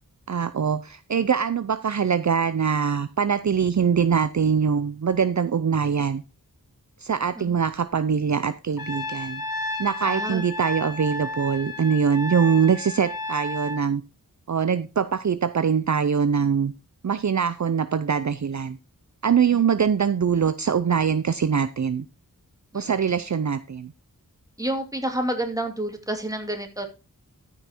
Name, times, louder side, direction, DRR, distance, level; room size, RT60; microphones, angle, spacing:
voice 1, 0.3-6.2 7.0-9.4 9.8-14.0 14.5-16.7 17.0-18.8 19.2-22.0 22.7-23.9, right 7 dB, 55° right, 12 dB, 0.6 m, -23 dB
Trumpet, 8.8-13.8, left 2 dB, 75° left, 1.7 m, -32 dB
voice 2, 10.1-10.5 22.7-23.0 24.6-26.9, right 1 dB, 10° right, 4 dB, 2.4 m, -29 dB
13.5 x 5.7 x 4.4 m, 0.30 s
wide cardioid pair, 60°, 35 cm